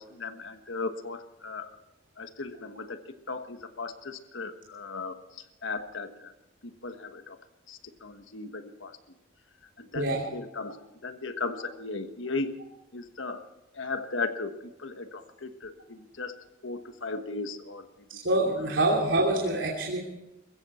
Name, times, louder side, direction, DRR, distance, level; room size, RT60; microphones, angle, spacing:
voice 1, 0.0-1.7 2.2-3.0 3.3-6.3 6.6-7.4 7.7-9.0 9.8-12.5 12.9-13.4 13.7-14.5 14.8-17.9 18.1-18.2, left 3 dB, 85° left, 8 dB, 1.4 m, -37 dB
voice 2, 9.9-10.3 18.1-20.0, right 1 dB, 75° right, -2 dB, 2.8 m, -26 dB
21.5 x 15.5 x 4.3 m, 0.96 s
head